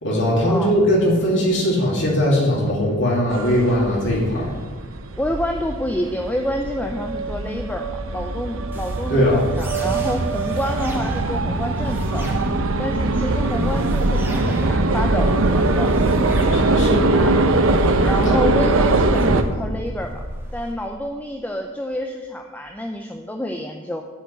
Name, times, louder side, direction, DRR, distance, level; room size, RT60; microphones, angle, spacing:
voice 1, 0.0-4.5 9.1-9.4 16.5-17.2 18.2-18.3, equal, 60° left, -4 dB, 2.6 m, -19 dB
sound 1, 3.3-19.4, right 2 dB, 70° right, 0.7 m, -21 dB
voice 2, 5.2-12.3 12.8-15.9 16.9-20.2 20.5-24.0, equal, 5° left, 3 dB, 0.5 m, -28 dB
sound 2, 8.7-20.7, equal, 10° right, 1.5 m, -34 dB
10.0 x 5.2 x 8.1 m, 1.4 s
head